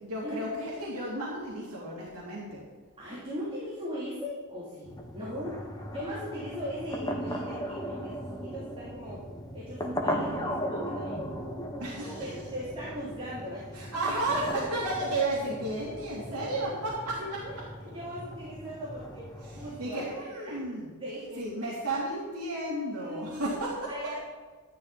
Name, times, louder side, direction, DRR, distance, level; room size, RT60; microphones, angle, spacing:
voice 1, 0.0-2.6 11.8-12.2 13.7-17.2 19.4-20.9 21.4-23.9, right 2 dB, 85° right, -5 dB, 3.0 m, -33 dB
voice 2, 3.0-4.9 5.1-5.6 5.9-9.2 9.5-11.2 12.0-13.9 14.4-14.5 17.2-20.6 21.0-21.5 22.9-23.4 23.9-24.2, equal, 25° right, -8 dB, 3.4 m, -39 dB
sound 1, 4.9-19.9, equal, 20° left, 1.3 m, -37 dB
13.0 x 11.0 x 4.3 m, 1.4 s
head